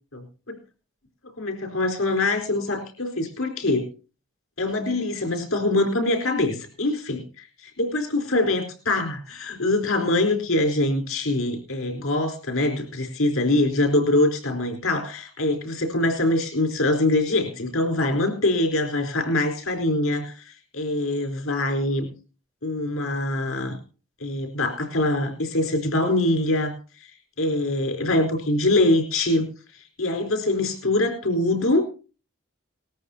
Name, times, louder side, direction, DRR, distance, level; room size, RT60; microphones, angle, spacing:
voice 1, 0.1-0.6 1.4-3.9 4.6-22.1 22.6-23.8 24.2-26.7 27.4-29.5 29.7-31.9, left 2 dB, 90° left, 3 dB, 4.2 m, -24 dB
19.0 x 14.0 x 2.8 m, 0.35 s
head